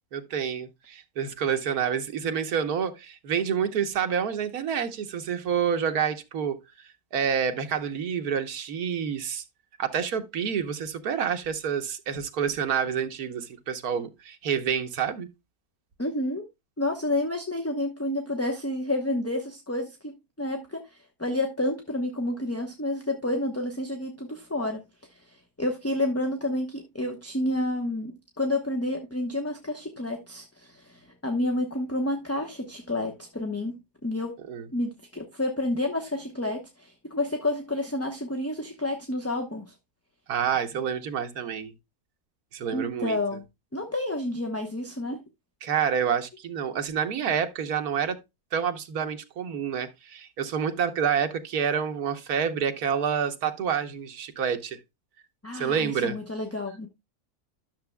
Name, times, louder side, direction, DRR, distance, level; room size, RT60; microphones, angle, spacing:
voice 1, 0.1-9.4 9.8-15.3 34.5-34.7 40.3-41.7 42.5-43.2 45.6-48.2 48.5-54.8 55.5-56.2, right 7 dB, 80° right, 1.5 m, -28 dB
voice 2, 16.0-16.5 16.8-24.8 25.2-34.3 34.7-39.7 42.7-43.4 43.7-45.2 55.4-56.9, left 1 dB, 10° left, 0.9 m, -30 dB
12.5 x 6.9 x 2.2 m
omnidirectional pair, 1.6 m